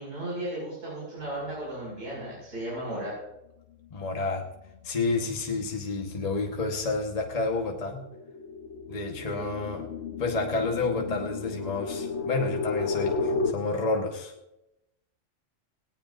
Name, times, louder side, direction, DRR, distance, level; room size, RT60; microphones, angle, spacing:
voice 1, 0.0-3.1 9.3-9.5, right 1 dB, 75° right, -8 dB, 6.0 m, -35 dB
sound 1, 3.8-4.2 4.6-13.5, left 4 dB, 60° left, 1.2 m, -34 dB
voice 2, 3.9-4.4 4.8-8.0 8.9-9.9 10.2-14.3, left 3 dB, 30° left, 1 dB, 1.3 m, -30 dB
18.0 x 18.0 x 2.5 m, 0.90 s
omnidirectional pair, 1.3 m